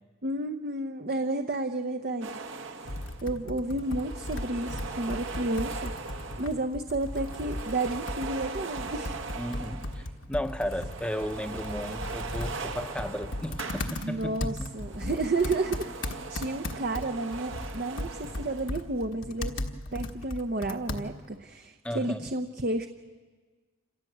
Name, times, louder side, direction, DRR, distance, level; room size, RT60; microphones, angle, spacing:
voice 1, 0.2-2.4 3.2-5.9 6.4-9.2 14.0-19.6 19.9-22.9, right 2 dB, 45° right, 6 dB, 0.8 m, -31 dB
sound 1, 2.2-3.3 3.7-6.7 7.0-10.1 10.4-14.3 14.6-18.9, right 4 dB, 70° right, 1.6 m, -40 dB
Computer keyboard, 2.9-21.4, left 1 dB, 65° left, 1.4 m, -37 dB
voice 2, 9.4-14.7 21.8-22.3, equal, 5° left, 8 dB, 0.8 m, -34 dB
27.5 x 16.5 x 8.0 m, 1.5 s
head